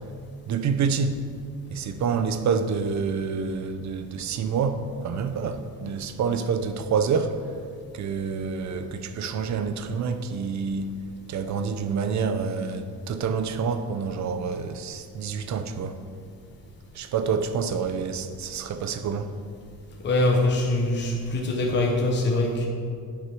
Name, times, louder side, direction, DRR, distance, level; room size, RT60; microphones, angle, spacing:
voice 1, 0.5-1.2 1.7-7.3 7.9-11.0 11.3-16.0 16.9-19.3, right 5 dB, 50° right, 0.6 m, -27 dB
voice 2, 20.0-22.7, left 2 dB, 30° left, 1.0 m, -23 dB
9.6 x 5.9 x 6.1 m
cardioid pair, 175°, 36 cm